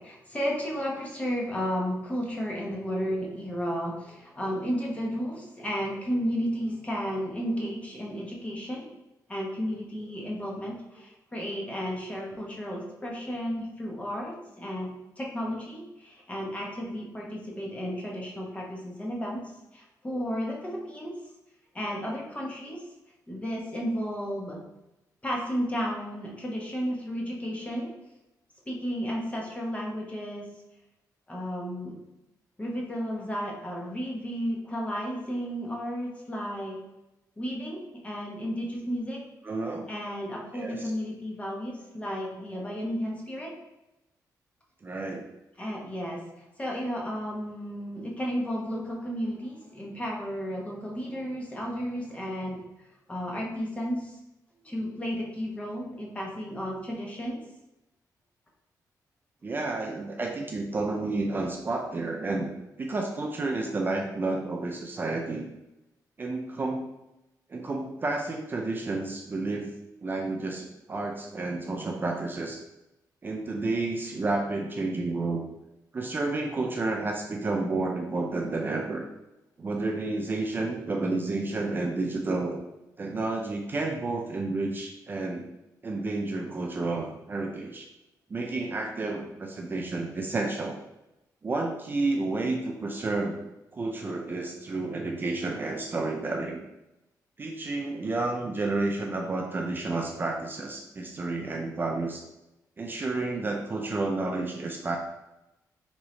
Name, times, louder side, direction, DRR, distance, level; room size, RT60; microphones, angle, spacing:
voice 1, 0.1-8.9 9.3-14.9 15.2-19.4 19.7-21.1 21.7-22.8 23.3-24.6 25.2-27.9 28.7-30.4 31.3-32.0 32.6-36.8 37.4-39.2 39.9-43.5 45.6-46.2 46.6-52.6 53.1-54.1 54.6-57.4, equal, 20° left, -2 dB, 0.9 m, -33 dB
voice 2, 39.4-39.9 40.5-40.8 44.8-45.3 59.4-62.5 62.8-65.5 66.2-66.8 67.5-69.7 70.0-72.6 73.2-75.4 75.9-79.0 79.6-82.6 83.0-85.4 85.8-87.9 88.3-90.8 91.4-93.4 93.7-96.6 97.4-102.2 102.8-105.0, right 2 dB, 30° right, 1 dB, 0.4 m, -30 dB
3.5 x 3.1 x 3.1 m, 0.91 s
cardioid pair, 110°, 7 cm